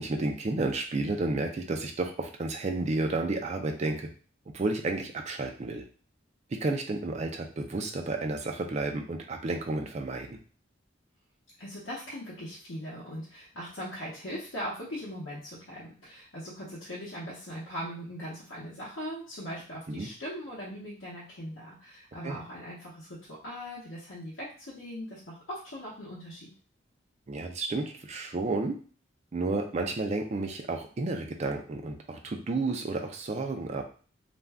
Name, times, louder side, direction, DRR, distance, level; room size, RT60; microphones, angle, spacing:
voice 1, 0.0-4.1 4.5-5.9 6.5-10.4 19.9-20.1 22.2-22.4 27.3-28.8 29.3-33.9, right 2 dB, 35° right, 3 dB, 0.4 m, -31 dB
voice 2, 11.6-26.5, equal, 75° left, -8 dB, 0.8 m, -40 dB
2.5 x 2.2 x 3.3 m, 0.40 s
head